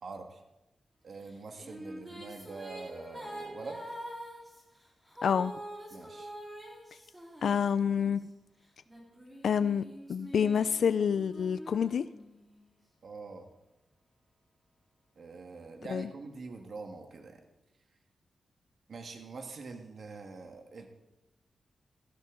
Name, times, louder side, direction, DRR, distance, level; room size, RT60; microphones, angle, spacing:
voice 1, 0.0-0.4 1.0-4.0 5.9-6.3 13.0-13.5 15.1-17.4 18.9-20.9, right 4 dB, 60° right, 4 dB, 1.6 m, -44 dB
sound 1, 1.2-8.2 8.9-12.6, equal, 10° right, 3.9 m, -46 dB
voice 2, 5.2-5.5 7.4-8.2 9.4-9.8 10.1-12.0 15.9-16.0, left 7 dB, 75° left, 13 dB, 0.4 m, -27 dB
16.5 x 12.0 x 3.8 m, 0.95 s
wide cardioid pair, 120°, 0 cm